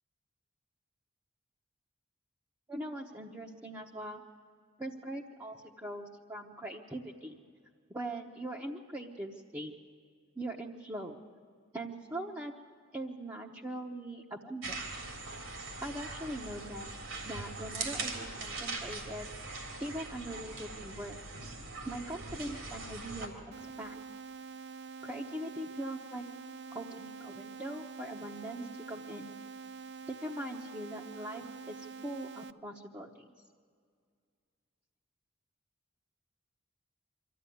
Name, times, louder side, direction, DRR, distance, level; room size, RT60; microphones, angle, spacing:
voice 1, 2.7-4.2 4.8-7.4 7.9-9.7 10.4-11.2 11.7-12.5 12.9-14.8 15.8-16.9 17.2-19.3 19.8-21.2 21.8-23.3 23.8-24.0 25.0-26.2 26.7-29.3 30.1-33.3, right 1 dB, 15° right, -2 dB, 1.0 m, -41 dB
sound 1, 14.6-23.3, right 3 dB, 85° right, 3.6 m, -41 dB
sound 2, 23.5-32.5, right 5 dB, 60° right, 0.5 m, -46 dB
24.0 x 14.5 x 9.2 m, 2.1 s
head